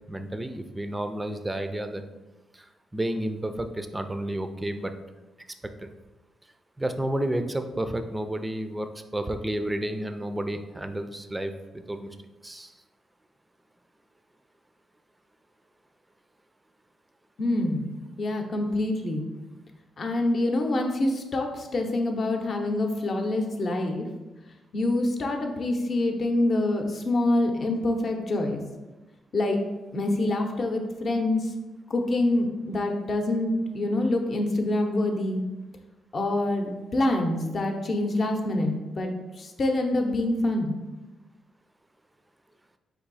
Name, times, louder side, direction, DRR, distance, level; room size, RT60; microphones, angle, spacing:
voice 1, 0.1-2.0 2.5-2.6 2.9-4.9 5.8-5.9 6.8-8.9 9.1-11.5 11.9-12.1 12.4-12.7, right 1 dB, 15° right, 8 dB, 0.4 m, -31 dB
voice 2, 17.4-17.9 18.2-19.2 20.0-24.1 24.7-28.6 29.3-29.6 29.9-31.5 31.9-35.4 36.1-39.1 39.4-40.7, left 2 dB, 50° left, 3 dB, 0.7 m, -26 dB
4.7 x 2.7 x 4.0 m, 1.1 s
cardioid pair, 90°, 0 cm